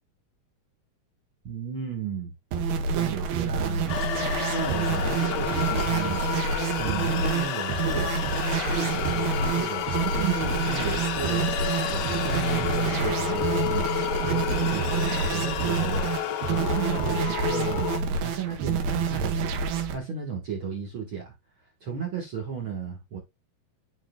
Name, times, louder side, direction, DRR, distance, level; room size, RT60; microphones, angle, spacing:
voice 1, 1.4-2.3 2.9-4.0 4.3-8.1 8.7-13.9 14.3-19.6 19.9-21.3 21.8-23.2, right 6 dB, 55° right, 1.5 m, -34 dB
sound 1, 2.5-20.0, right 5 dB, 85° right, 2.9 m, -27 dB
sound 2, 3.9-18.0, left 11 dB, 75° left, 1.7 m, -31 dB
11.5 x 4.5 x 2.2 m
omnidirectional pair, 4.3 m